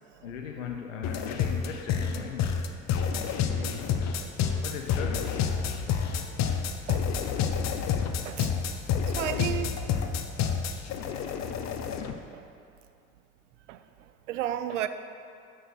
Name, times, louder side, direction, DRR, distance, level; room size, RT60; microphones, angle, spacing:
voice 1, 0.2-2.6 4.6-5.5, left 7 dB, 85° left, 2 dB, 0.8 m, -38 dB
sound 1, 1.0-12.1, left 7 dB, 45° left, 0.9 m, -29 dB
voice 2, 8.2-8.8 9.1-9.8 12.3-12.5 13.7-13.8 14.3-14.9, right 12 dB, 80° right, 11 dB, 0.6 m, -33 dB
12.0 x 4.8 x 6.1 m, 2.4 s
hypercardioid pair, 70°, 37 cm